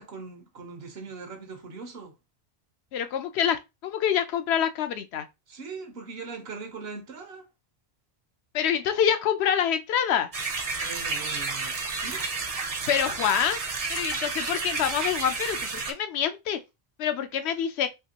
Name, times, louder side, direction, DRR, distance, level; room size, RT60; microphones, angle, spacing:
voice 1, 0.0-2.1 5.5-7.4 10.8-12.3, right 4 dB, 75° right, 1.1 m, -40 dB
voice 2, 2.9-5.3 8.5-10.3 12.7-13.6 13.9-16.6 17.0-17.9, left 9 dB, 90° left, 0.8 m, -26 dB
sound 1, 10.3-15.9, right 4 dB, 45° right, 0.6 m, -31 dB
3.5 x 2.8 x 2.8 m
omnidirectional pair, 1.1 m